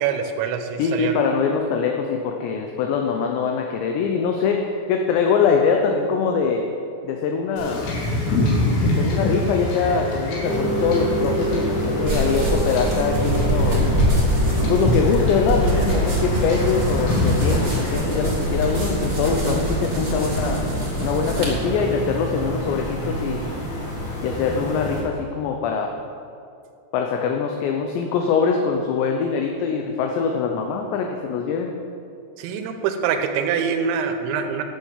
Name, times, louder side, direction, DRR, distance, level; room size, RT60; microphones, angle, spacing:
voice 1, 0.0-1.1 32.4-34.6, right 7 dB, 80° right, 5 dB, 3.0 m, -24 dB
voice 2, 0.8-6.6 7.0-7.8 8.8-13.8 14.7-20.6 21.0-23.4 24.2-25.9 26.9-31.7, left 5 dB, 80° left, 3 dB, 2.6 m, -23 dB
Wind / Ocean / Boat Water vehicle, 7.6-17.9, left 1 dB, 65° left, 4.0 m, -25 dB
sound 1, 10.4-25.0, right 1 dB, 45° left, 1.5 m, -28 dB
sound 2, 12.0-21.5, right 1 dB, 30° right, 1.3 m, -24 dB
11.0 x 6.8 x 7.3 m, 2.5 s
omnidirectional pair, 5.7 m